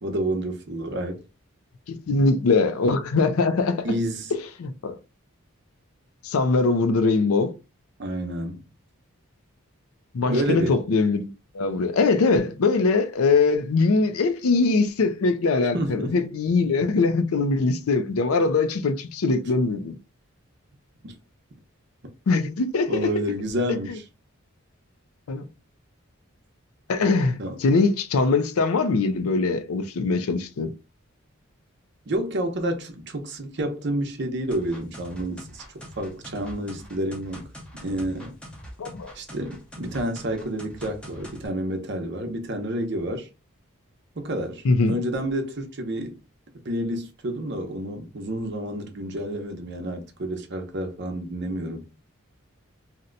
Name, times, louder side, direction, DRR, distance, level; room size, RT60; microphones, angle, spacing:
voice 1, 0.0-1.2 3.8-4.3 8.0-8.6 10.3-10.8 15.7-16.2 21.0-21.1 22.9-24.0 27.4-27.6 32.1-37.5 37.8-38.3 39.1-43.3 44.2-46.2 46.6-51.9, right 1 dB, 55° right, 0.7 m, -29 dB
voice 2, 1.9-3.9 4.3-5.0 6.2-7.5 10.1-11.3 11.5-19.9 22.3-23.1 25.3-25.4 26.9-30.7 38.8-39.1 44.6-45.0, left 3 dB, 80° left, 0.5 m, -22 dB
sound 1, 34.5-41.5, equal, 5° left, 0.6 m, -43 dB
2.8 x 2.1 x 3.8 m
head